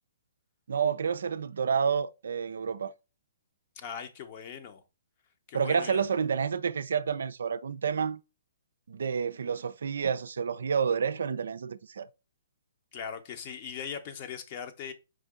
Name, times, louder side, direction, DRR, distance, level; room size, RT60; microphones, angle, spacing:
voice 1, 0.7-2.9 5.5-8.2 8.9-12.1, right 6 dB, 70° right, 0.4 m, -29 dB
voice 2, 3.8-4.8 5.5-6.0 12.9-14.9, left 7 dB, 40° left, 0.8 m, -40 dB
4.9 x 2.7 x 3.6 m
figure-of-eight pair, 130°, 0 cm